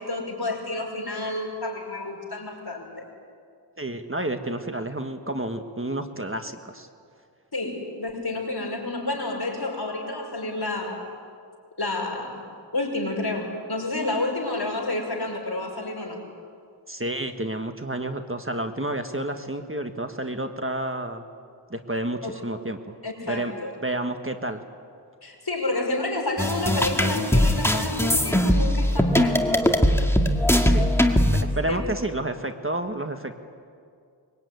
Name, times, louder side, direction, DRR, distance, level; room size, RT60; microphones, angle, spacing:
voice 1, 0.0-3.0 7.5-11.0 11.8-12.4 12.7-16.2 22.2-22.3 23.0-23.7 25.2-29.5 31.7-31.9, left 2 dB, 60° left, 0 dB, 5.8 m, -30 dB
voice 2, 3.8-6.9 16.9-21.2 21.7-23.0 23.3-23.5 23.8-24.6 30.6-30.9 31.4-33.4, right 1 dB, 30° right, 6 dB, 1.6 m, -30 dB
sound 1, 26.4-31.4, equal, 5° left, 2.0 m, -20 dB
24.0 x 22.5 x 9.5 m, 2.3 s
wide cardioid pair, 60°, 42 cm